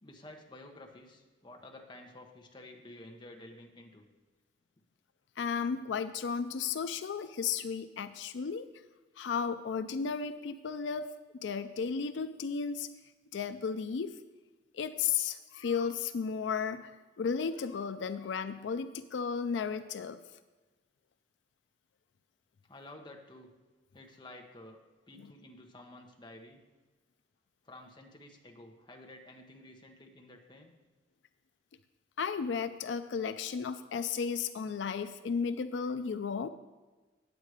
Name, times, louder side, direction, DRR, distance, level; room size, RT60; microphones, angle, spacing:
voice 1, 0.0-4.1 22.7-23.5 23.9-24.8 25.1-26.6 27.6-30.7, left 1 dB, 25° left, 3 dB, 1.0 m, -51 dB
voice 2, 5.4-8.7 9.2-11.1 11.4-12.9 13.3-14.2 14.7-20.2 25.2-25.3 32.2-36.5, left 6 dB, 85° left, 11 dB, 0.4 m, -34 dB
9.2 x 8.1 x 4.8 m, 1.3 s
head